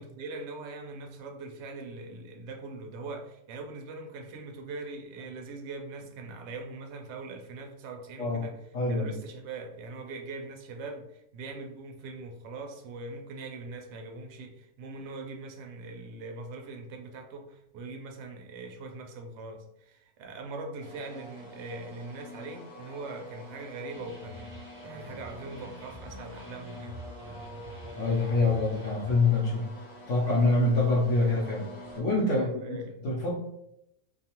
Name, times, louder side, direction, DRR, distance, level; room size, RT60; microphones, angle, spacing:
voice 1, 0.0-8.6 8.9-27.0 32.3-33.0, right 3 dB, 65° right, 3 dB, 0.8 m, -41 dB
voice 2, 8.7-9.1 28.0-29.7 30.1-32.5 33.0-33.4, left 2 dB, 70° left, -6 dB, 0.9 m, -25 dB
sound 1, 20.8-32.0, left 1 dB, 30° left, 0.5 m, -46 dB
sound 2, 23.9-29.1, right 1 dB, 20° right, 0.3 m, -47 dB
2.5 x 2.3 x 2.8 m, 0.81 s
omnidirectional pair, 1.4 m